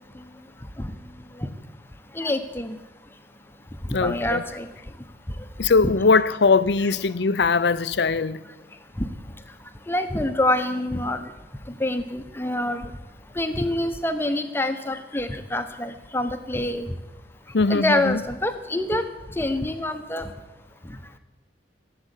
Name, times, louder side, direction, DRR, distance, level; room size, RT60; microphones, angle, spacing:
voice 1, 2.1-2.8 3.8-4.7 5.8-5.9 6.8-6.9 9.0-9.1 9.9-11.3 11.7-12.9 13.3-16.9 17.7-19.0 19.3-20.3 20.9-21.0, left 1 dB, 10° left, 1.0 m, -26 dB
voice 2, 3.9-4.4 5.6-8.4 17.5-17.9, left 4 dB, 70° left, 0.6 m, -20 dB
16.5 x 7.8 x 9.9 m
head